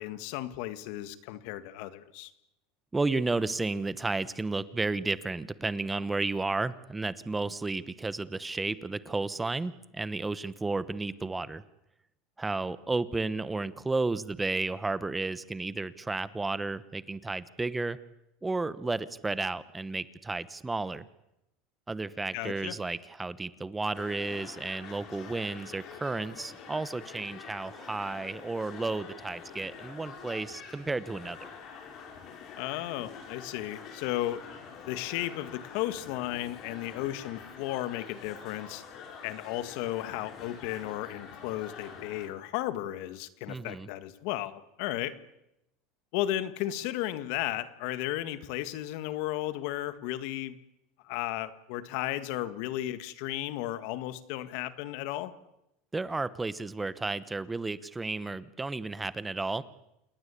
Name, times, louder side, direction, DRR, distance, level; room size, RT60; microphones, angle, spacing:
voice 1, 0.0-2.3 22.3-22.7 32.6-34.4 34.9-38.8 39.2-45.2 46.1-50.6 51.0-55.3, left 14 dB, 65° left, 13 dB, 1.8 m, -34 dB
voice 2, 2.9-11.6 12.4-18.0 18.4-21.0 21.9-31.5 43.5-43.9 55.9-59.6, right 3 dB, 10° right, 16 dB, 1.0 m, -32 dB
sound 1, 23.9-42.3, left 6 dB, 45° left, 6.4 m, -46 dB
28.5 x 20.0 x 8.4 m, 0.85 s
supercardioid pair, 130°, 0 cm